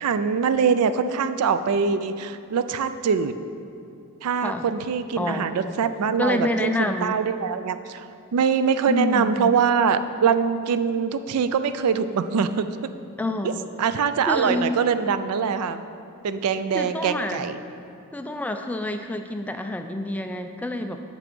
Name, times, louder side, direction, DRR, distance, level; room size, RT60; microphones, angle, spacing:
voice 1, 0.0-3.3 4.2-8.0 8.3-12.7 13.4-13.5 13.8-15.8 16.2-17.6, right 6 dB, 80° right, 11 dB, 0.4 m, -23 dB
voice 2, 5.2-5.7 6.2-7.2 8.9-9.6 13.2-13.7 14.3-14.8 16.7-17.4 18.1-21.0, left 1 dB, 5° left, 6 dB, 0.3 m, -28 dB
6.8 x 5.9 x 5.2 m, 2.6 s
head